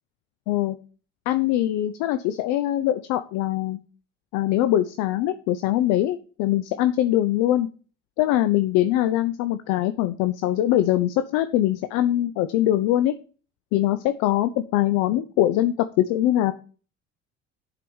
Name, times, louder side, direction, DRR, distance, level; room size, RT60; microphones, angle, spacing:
voice 1, 0.5-0.8 1.3-3.8 4.3-7.7 8.2-13.1 13.7-16.5, left 13 dB, 55° left, 11 dB, 0.7 m, -22 dB
7.5 x 4.9 x 7.0 m, 0.38 s
figure-of-eight pair, 55°, 36 cm